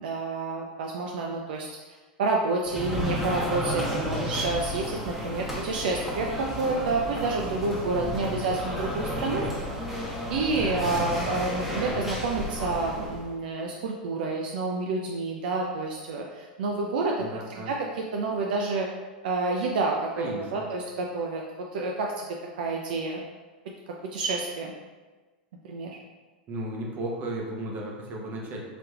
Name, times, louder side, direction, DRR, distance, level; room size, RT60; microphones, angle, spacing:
voice 1, 0.0-1.7 2.2-9.5 10.3-17.1 17.7-18.9 19.2-21.4 21.7-22.3 22.6-23.2 24.1-24.7 25.6-26.0, right 3 dB, 70° right, 0 dB, 0.4 m, -29 dB
sound 1, 2.7-13.3, equal, 5° right, 1.0 m, -32 dB
voice 2, 7.6-8.4 10.9-11.1 17.2-17.7 20.2-20.7 26.5-28.6, right 1 dB, 35° right, -1 dB, 0.9 m, -36 dB
5.0 x 2.9 x 2.4 m, 1.3 s
hypercardioid pair, 100°, 5 cm